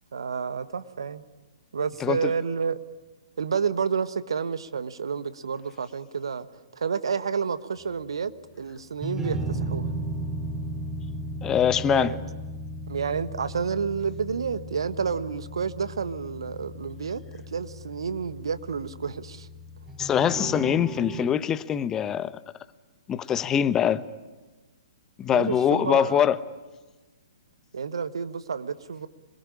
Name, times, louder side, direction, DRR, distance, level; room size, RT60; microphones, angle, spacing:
voice 1, 0.1-1.3 1.7-2.8 3.4-6.5 6.7-8.3 8.6-9.9 11.8-12.2 12.9-17.2 17.5-19.5 25.3-26.2 27.7-29.1, right 6 dB, 65° right, 13 dB, 1.4 m, -30 dB
voice 2, 2.0-2.3 11.4-12.1 20.0-22.4 23.1-24.0 25.2-26.4, left 9 dB, 20° left, 15 dB, 1.0 m, -23 dB
sound 1, 8.8-21.3, right 1 dB, 15° right, 3.1 m, -35 dB
27.0 x 22.0 x 9.9 m, 1.2 s
figure-of-eight pair, 120°, 3 cm